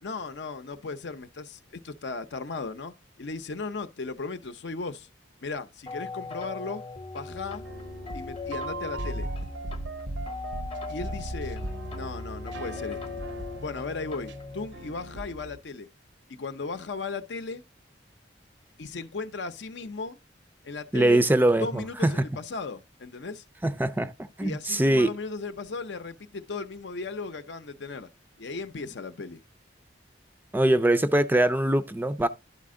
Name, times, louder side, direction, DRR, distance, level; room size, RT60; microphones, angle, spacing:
voice 1, 0.0-5.1 5.4-6.8 7.1-7.6 8.1-9.3 10.9-13.2 13.6-15.9 16.3-17.6 18.8-20.2 20.6-21.2 21.6-23.4 24.4-28.1 28.4-29.4, left 4 dB, 70° left, 0.7 m, -36 dB
sound 1, 5.9-14.7, left 3 dB, 30° left, 0.8 m, -39 dB
sound 2, 7.3-15.6, right 1 dB, 70° right, 0.7 m, -38 dB
voice 2, 20.9-22.2 23.6-24.1 24.4-25.1 30.5-32.3, right 1 dB, 10° right, 0.4 m, -22 dB
11.5 x 4.2 x 3.7 m
head